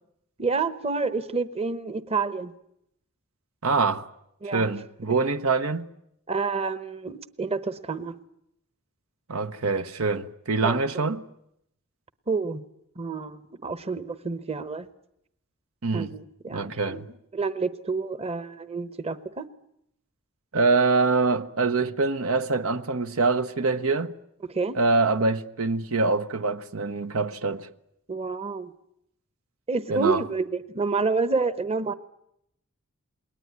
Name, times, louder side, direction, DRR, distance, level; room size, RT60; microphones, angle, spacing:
voice 1, 0.4-2.5 4.4-4.7 5.0-5.1 6.3-8.1 10.6-11.0 12.3-12.6 13.0-14.9 15.9-17.0 17.3-19.5 24.5-24.8 28.1-28.7 29.7-31.9, right 4 dB, 30° right, 1.0 m, -29 dB
voice 2, 3.6-4.0 4.5-5.9 9.3-11.2 15.8-16.1 16.5-17.1 20.5-24.1 24.7-27.7 29.9-30.2, right 3 dB, 85° right, 1.1 m, -24 dB
28.5 x 21.0 x 9.6 m
head